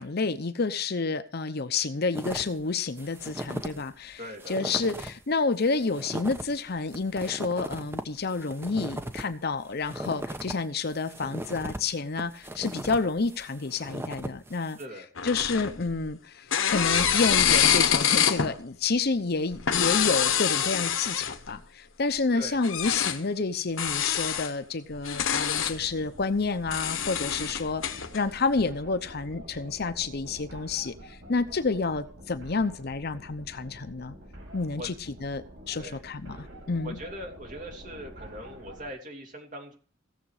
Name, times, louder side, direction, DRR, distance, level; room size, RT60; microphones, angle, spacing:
voice 1, 0.0-4.2 4.5-14.8 15.2-27.8 28.1-31.0 31.3-34.2 34.5-34.9 35.2-36.9, left 4 dB, 55° left, 11 dB, 0.8 m, -29 dB
sound 1, 2.1-2.6 3.0-3.8 4.1-4.2 4.4-5.2 5.6-10.5 10.9-14.8, right 1 dB, 10° right, 0.9 m, -38 dB
voice 2, 4.2-4.9 14.8-15.1 22.3-22.6 34.8-34.9 35.7-36.0 36.8-39.8, equal, 40° right, 2 dB, 3.0 m, -41 dB
Squeaking Office Chair, 15.2-16.1 16.5-18.5 19.5-21.5 22.6-23.2 23.8-24.5 25.0-25.8 26.7-28.2, left 8 dB, 80° left, 1.1 m, -25 dB
sound 2, 25.5-38.9, equal, 65° right, 5.9 m, -47 dB
17.0 x 7.2 x 4.9 m, 0.42 s
head